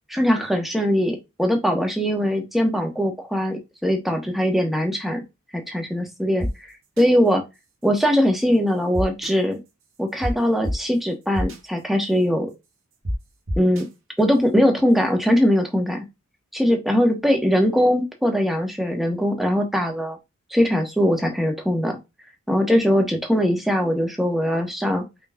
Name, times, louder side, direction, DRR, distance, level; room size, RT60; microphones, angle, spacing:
voice 1, 0.1-5.2 5.5-7.4 7.8-9.6 10.0-12.5 13.6-13.9 14.2-16.0 16.5-20.2 20.5-22.0 22.5-25.0, equal, ahead, 2 dB, 1.0 m, -21 dB
sound 1, 6.4-6.5 7.0-7.1 8.9-9.3 10.2-10.3 10.6-10.7 11.3-11.6 13.0-13.1 13.5-13.8, equal, 70° right, 1.5 m, -25 dB
5.2 x 4.0 x 2.3 m, 0.23 s
head